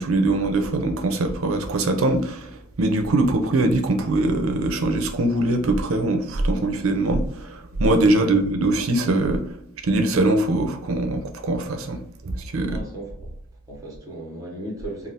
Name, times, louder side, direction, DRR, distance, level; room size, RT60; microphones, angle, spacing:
voice 1, 0.0-9.4 9.8-12.7, right 2 dB, 70° right, 5 dB, 0.5 m, -22 dB
voice 2, 8.0-8.3 12.6-13.3 13.7-15.1, right 1 dB, 15° right, -3 dB, 1.0 m, -36 dB
2.6 x 2.3 x 3.3 m, 0.74 s
head